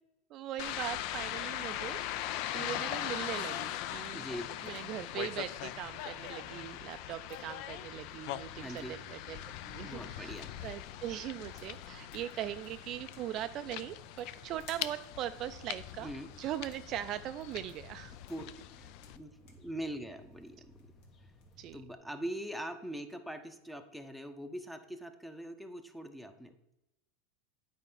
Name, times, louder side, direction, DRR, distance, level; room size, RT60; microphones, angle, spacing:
voice 1, 0.3-2.0 2.5-4.3 4.6-10.3 10.6-16.1 16.4-18.2 21.6-21.8, right 12 dB, 45° right, 10 dB, 0.3 m, -40 dB
sound 1, 0.6-19.2, left 12 dB, 55° left, 0.5 m, -41 dB
sound 2, 3.4-22.0, right 1 dB, 75° left, 1.9 m, -60 dB
voice 2, 4.1-4.5 8.5-9.0 9.8-10.5 16.0-16.3 18.3-18.5 18.8-20.7 21.2-21.3 21.7-26.5, right 1 dB, ahead, 8 dB, 0.8 m, -42 dB
sound 3, 11.1-21.8, left 5 dB, 35° left, 1.0 m, -62 dB
9.0 x 4.3 x 5.5 m, 0.89 s
supercardioid pair, 130°, 0 cm